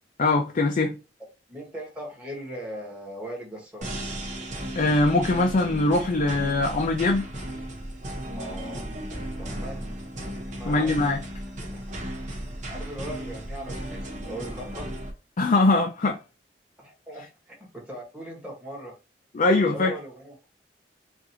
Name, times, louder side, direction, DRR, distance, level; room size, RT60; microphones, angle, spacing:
voice 1, 0.2-1.0 4.8-7.2 10.7-11.2 15.4-16.2 19.3-19.9, left 2 dB, 45° left, 0.5 m, -22 dB
voice 2, 1.5-3.9 8.3-8.9 9.4-9.9 10.3-11.0 11.7-11.8 12.7-14.9 16.8-18.9 19.7-20.4, right 1 dB, 5° right, 1.5 m, -39 dB
sound 1, 3.8-15.1, right 1 dB, 45° right, 1.1 m, -35 dB
4.7 x 2.6 x 2.9 m
head